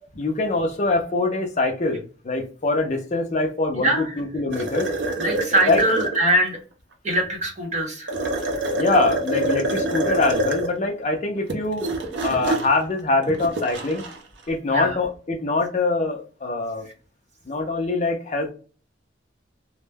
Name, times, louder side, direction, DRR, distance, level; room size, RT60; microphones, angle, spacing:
voice 1, 0.1-4.9 5.7-5.8 8.8-12.0 12.2-14.0 14.5-16.9 17.5-18.5, left 2 dB, 40° left, 3 dB, 0.5 m, -24 dB
voice 2, 3.8-4.2 5.2-6.6 7.0-8.1 14.7-15.0, right 1 dB, 40° right, 0 dB, 0.9 m, -22 dB
sound 1, 4.5-6.2 8.1-10.7 11.3-14.2, right 1 dB, 75° right, 0.6 m, -26 dB
2.2 x 2.1 x 3.2 m, 0.38 s
head